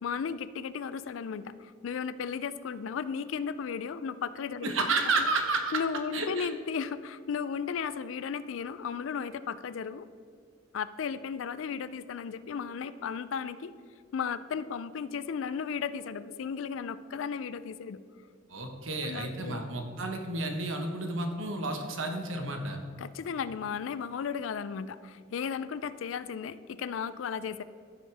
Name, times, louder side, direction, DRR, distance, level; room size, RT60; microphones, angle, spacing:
voice 1, 0.0-4.8 5.2-5.3 5.7-10.1 10.7-13.7 14.1-18.0 19.0-19.6 23.0-27.6, left 6 dB, 70° left, 15 dB, 0.4 m, -35 dB
voice 2, 4.6-5.8 6.1-6.5 18.5-22.8, right 3 dB, 70° right, 4 dB, 1.1 m, -31 dB
14.0 x 6.4 x 3.4 m, 2.3 s
head